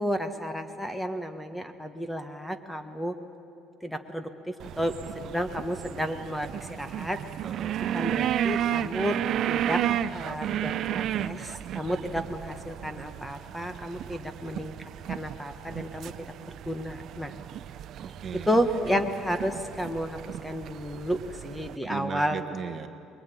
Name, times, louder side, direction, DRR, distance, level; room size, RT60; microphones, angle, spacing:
voice 1, 0.0-3.1 3.8-7.2 7.9-9.2 9.5-9.8 10.1-14.7 15.1-16.3 16.7-17.3 18.5-22.4, equal, 5° left, 8 dB, 1.3 m, -31 dB
sound 1, 4.6-21.8, right 10 dB, 55° right, 0.6 m, -33 dB
voice 2, 7.4-7.8 18.0-18.5 21.8-22.9, right 7 dB, 40° right, 8 dB, 1.2 m, -36 dB
24.0 x 22.0 x 9.1 m, 2.7 s
cardioid pair, 125°, 0 cm